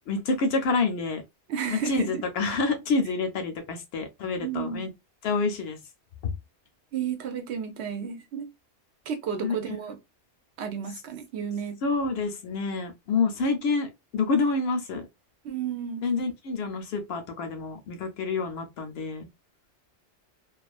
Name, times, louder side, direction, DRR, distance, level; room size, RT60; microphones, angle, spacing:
voice 1, 0.1-1.2 1.7-4.9 5.2-5.8 6.2-6.3 9.4-9.8 11.8-15.1 16.0-19.3, left 4 dB, 65° left, 0.8 m, -28 dB
voice 2, 1.5-2.2 4.4-4.8 6.9-8.5 9.1-10.0 10.6-11.8 15.4-16.0, right 7 dB, 75° right, 0.9 m, -32 dB
2.4 x 2.3 x 2.3 m
omnidirectional pair, 1.2 m